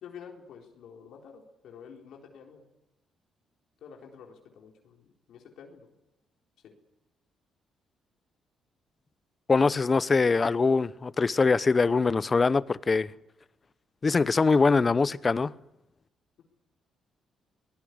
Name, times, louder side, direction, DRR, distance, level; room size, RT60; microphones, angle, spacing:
voice 1, 0.0-2.6 3.8-5.9 6.6-6.7, left 7 dB, 75° left, 4.1 m, -49 dB
voice 2, 9.5-13.1 14.0-15.5, left 4 dB, 30° left, 0.8 m, -23 dB
24.0 x 19.0 x 9.6 m
cardioid pair, 90°, 0 cm